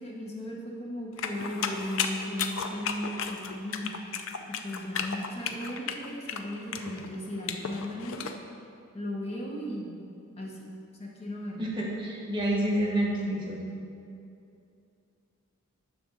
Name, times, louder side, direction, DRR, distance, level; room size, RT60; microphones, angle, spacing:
voice 1, 0.0-3.9 4.6-8.3 8.9-10.0 10.4-10.7 11.0-11.7, left 1 dB, 30° left, -2 dB, 1.0 m, -36 dB
sound 1, 1.2-8.4, left 6 dB, 65° left, 0.5 m, -34 dB
voice 2, 11.6-13.6, right 1 dB, 20° right, -4 dB, 1.2 m, -28 dB
10.0 x 3.4 x 6.4 m, 2.5 s
head